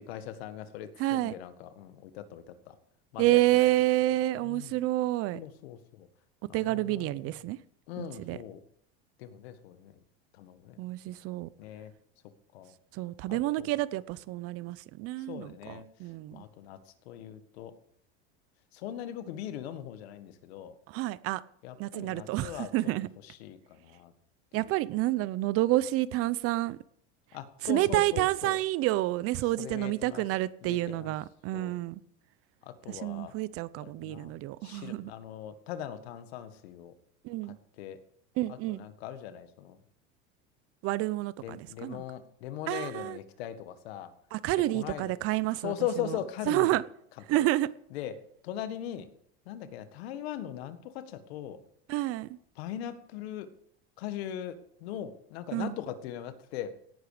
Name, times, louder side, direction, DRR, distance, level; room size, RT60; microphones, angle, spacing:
voice 1, 0.0-2.8 3.1-3.7 4.4-4.8 5.3-6.1 6.5-7.2 7.9-8.6 9.2-10.0 10.3-10.8 11.6-11.9 12.5-12.7 13.3-13.7 15.3-15.9 16.3-16.8 17.1-17.7 18.7-20.8 21.6-22.7 23.2-24.1 24.5-24.7 27.3-28.6 29.6-30.3 30.6-31.1 31.5-31.8 32.6-33.3 33.8-34.3 34.6-36.9 37.5-38.0 38.5-39.8 41.4-44.1 44.7-45.1 45.6-46.7 47.3-47.5 47.9-48.1 48.4-49.1 49.5-51.6 52.6-53.5 54.0-56.7, left 10 dB, 85° left, 10 dB, 1.8 m, -40 dB
voice 2, 1.0-1.3 3.2-5.4 6.5-7.6 8.0-8.4 10.8-11.5 12.9-16.4 20.9-21.4 21.8-23.1 24.5-26.8 27.6-32.0 32.9-35.1 37.2-37.6 38.4-38.9 40.8-42.0 42.7-43.2 44.3-45.7 46.5-46.8 47.3-47.7 51.9-52.3 55.5-55.8, right 17 dB, 50° right, 18 dB, 0.7 m, -29 dB
17.5 x 11.0 x 5.0 m, 0.67 s
supercardioid pair, 140°, 31 cm